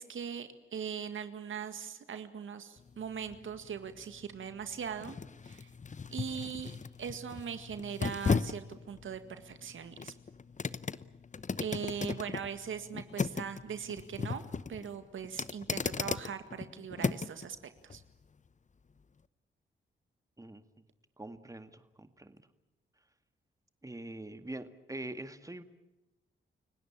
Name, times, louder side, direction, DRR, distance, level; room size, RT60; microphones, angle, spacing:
voice 1, 0.0-5.2 5.4-5.7 6.1-6.7 7.0-10.1 11.6-14.4 14.7-17.6 17.8-18.0, right 7 dB, 70° right, 9 dB, 1.9 m, -40 dB
sound 1, 2.8-17.5 17.9-18.0, left 5 dB, 35° left, 0.9 m, -37 dB
voice 2, 21.2-22.4 23.8-25.6, right 1 dB, 15° right, 9 dB, 2.1 m, -44 dB
30.0 x 17.0 x 8.7 m, 0.93 s
cardioid pair, 55°, 21 cm